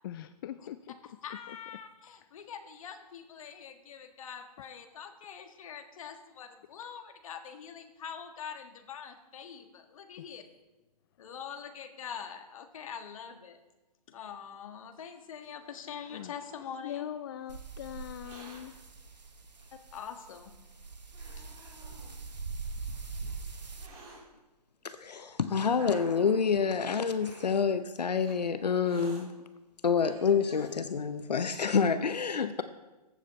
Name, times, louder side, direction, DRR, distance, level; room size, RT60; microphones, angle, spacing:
voice 1, 0.0-1.2 1.5-1.6 10.2-10.3 16.1-16.3 16.8-18.8, left 11 dB, 35° left, 13 dB, 0.4 m, -41 dB
voice 2, 1.2-10.4 11.2-13.6 14.1-17.1 19.9-20.6, left 7 dB, 55° left, 6 dB, 1.4 m, -44 dB
Hiss, 15.4-17.1 18.0-18.6 19.6-19.7 20.5-20.6 21.1-22.1 23.0-24.2 25.0-26.5 27.1-27.5 28.2-28.3 28.8-29.2 29.7-29.8 30.0-30.7, right 2 dB, 30° right, 3.2 m, -52 dB
sound 1, 17.5-23.9, right 4 dB, 85° right, 1.1 m, -42 dB
voice 3, 24.8-29.3 29.8-32.6, left 6 dB, 80° left, 11 dB, 0.7 m, -28 dB
14.5 x 7.4 x 4.2 m, 1.1 s
figure-of-eight pair, 125°, 21 cm